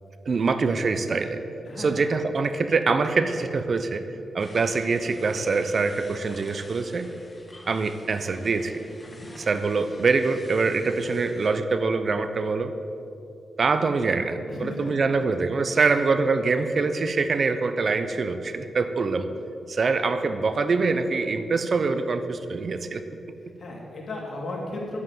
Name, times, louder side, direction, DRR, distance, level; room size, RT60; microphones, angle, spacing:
voice 1, 0.2-1.4 1.8-4.0 4.3-7.1 7.7-8.8 9.4-12.7 13.6-19.3 19.7-23.0, right 4 dB, 55° right, 10 dB, 0.7 m, -24 dB
voice 2, 1.6-2.0 9.0-9.3 14.5-14.9 15.2-15.3 15.7-15.9 23.6-25.0, left 2 dB, 50° left, -2 dB, 3.2 m, -35 dB
sound 1, 4.4-11.5, left 1 dB, 20° left, 1.8 m, -49 dB
11.0 x 7.8 x 7.7 m, 2.8 s
cardioid pair, 70°, 0 cm